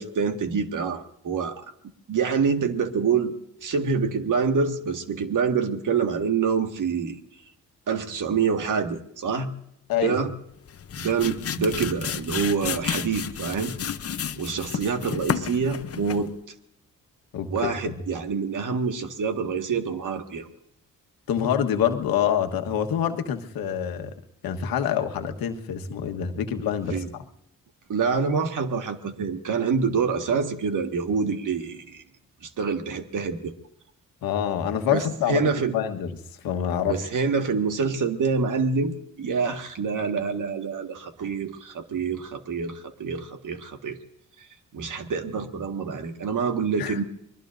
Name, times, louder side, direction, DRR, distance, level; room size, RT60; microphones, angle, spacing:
voice 1, 0.0-1.6 2.1-3.3 3.6-7.2 7.9-9.5 10.0-10.3 11.0-13.7 14.4-16.3 17.5-20.5 26.9-27.1 27.9-32.0 32.4-33.6 34.9-35.8 36.9-44.0 44.4-44.5 44.7-47.0, right 5 dB, 60° right, 6 dB, 1.8 m, -26 dB
sound 1, 10.5-16.4, left 8 dB, 45° left, 0.8 m, -32 dB
voice 2, 17.3-18.0 21.3-24.1 24.4-27.2 34.2-35.4 35.7-36.1 36.4-37.0 46.8-47.0, left 9 dB, 85° left, 6 dB, 1.4 m, -26 dB
25.5 x 21.0 x 2.6 m, 0.75 s
cardioid pair, 65°, 34 cm